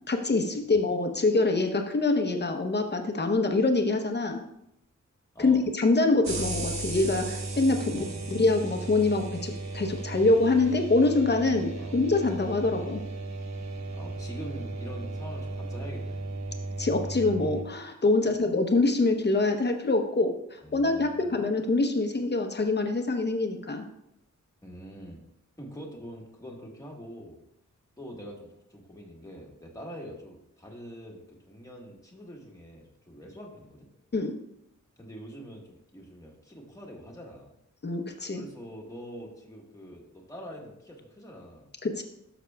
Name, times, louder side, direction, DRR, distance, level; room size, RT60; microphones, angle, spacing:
voice 1, 0.1-4.4 5.4-13.0 16.8-23.8 34.1-34.3 37.8-38.4 41.8-42.0, left 3 dB, 35° left, 4 dB, 0.8 m, -25 dB
sound 1, 6.2-17.6, right 2 dB, 60° right, 1.1 m, -35 dB
voice 2, 7.7-8.3 11.8-12.0 13.9-16.3 18.2-18.4 20.6-21.2 24.6-25.2 25.6-27.4 28.0-33.9 35.0-37.5 38.3-41.7, equal, 10° left, -2 dB, 1.4 m, -44 dB
12.5 x 6.0 x 2.3 m, 0.79 s
wide cardioid pair, 170°, 30 cm